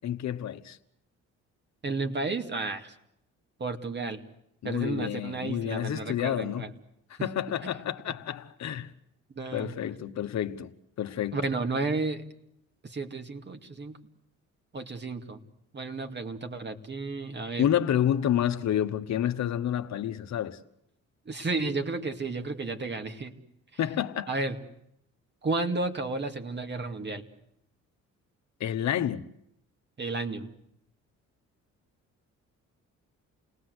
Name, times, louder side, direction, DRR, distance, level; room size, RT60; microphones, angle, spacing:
voice 1, 0.0-0.8 4.6-6.7 7.1-8.9 9.5-10.7 11.0-11.4 17.6-20.6 23.8-24.3 28.6-29.2, left 10 dB, 65° left, 1.3 m, -29 dB
voice 2, 1.8-3.0 3.6-4.2 4.6-6.7 7.6-7.7 9.3-9.8 11.3-12.2 12.8-14.0 14.7-15.4 15.7-17.7 21.3-23.4 24.3-24.6 25.4-27.3 30.0-30.5, right 3 dB, 35° right, 2.5 m, -32 dB
29.0 x 19.5 x 8.0 m
cardioid pair, 90°, 30 cm